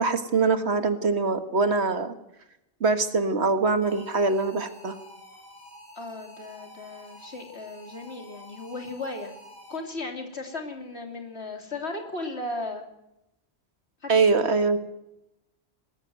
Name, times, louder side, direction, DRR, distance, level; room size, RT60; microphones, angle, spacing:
voice 1, 0.0-2.1 2.8-5.0 14.1-14.9, right 4 dB, 85° right, 8 dB, 1.9 m, -23 dB
sound 1, 3.8-10.1, equal, 60° left, 5.2 m, -49 dB
voice 2, 5.9-9.3 9.7-12.8 14.0-14.1, left 2 dB, 85° left, 3 dB, 3.2 m, -36 dB
20.0 x 14.0 x 9.3 m, 0.88 s
omnidirectional pair, 1.1 m